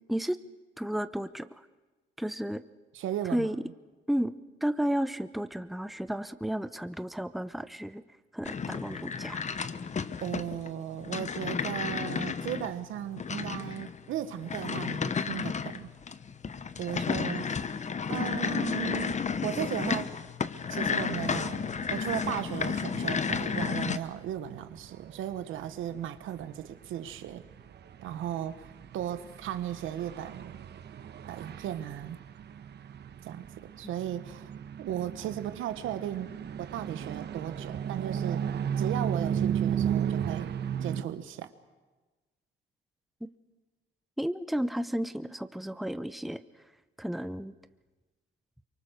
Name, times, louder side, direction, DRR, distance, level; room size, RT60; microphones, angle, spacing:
voice 1, 0.8-1.5 2.2-2.6 3.3-3.6 4.1-4.3 4.6-8.0 8.3-9.4 44.2-46.4 47.0-47.5, equal, ahead, 12 dB, 0.8 m, -32 dB
voice 2, 2.9-3.5 10.2-15.9 16.8-17.6 18.1-20.1 20.7-27.4 28.0-30.6 31.3-32.2 33.2-34.5 34.8-36.3 36.6-38.5 38.8-40.5 40.8-41.5, right 11 dB, 85° right, 11 dB, 1.3 m, -36 dB
sound 1, 8.4-24.0, left 6 dB, 35° left, 1.0 m, -32 dB
sound 2, 21.6-41.0, right 8 dB, 60° right, 1.1 m, -36 dB
24.0 x 23.5 x 6.7 m, 1.2 s
cardioid pair, 90°, 20 cm